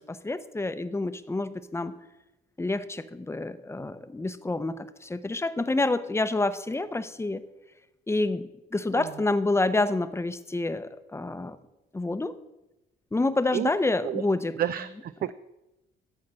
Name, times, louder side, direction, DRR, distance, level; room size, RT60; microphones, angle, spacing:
voice 1, 0.0-1.9 2.6-7.4 8.1-11.6 11.9-12.3 13.1-14.6, left 2 dB, 15° left, 12 dB, 0.7 m, -28 dB
voice 2, 14.6-15.3, right 11 dB, 50° right, 13 dB, 0.4 m, -30 dB
12.5 x 4.4 x 7.5 m, 0.97 s
cardioid pair, 90°, 20 cm